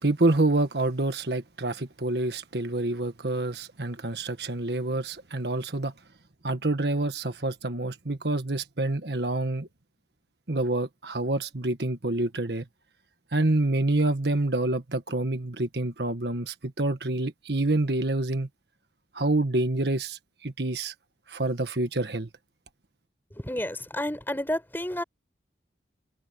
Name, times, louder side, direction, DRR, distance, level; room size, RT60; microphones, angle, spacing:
voice 1, 0.0-5.9 6.4-9.7 10.5-12.6 13.3-18.5 19.1-20.9 21.3-22.3, right 2 dB, 65° right, 1.5 m, -27 dB
voice 2, 23.3-25.0, left 1 dB, 10° left, 5.5 m, -30 dB
head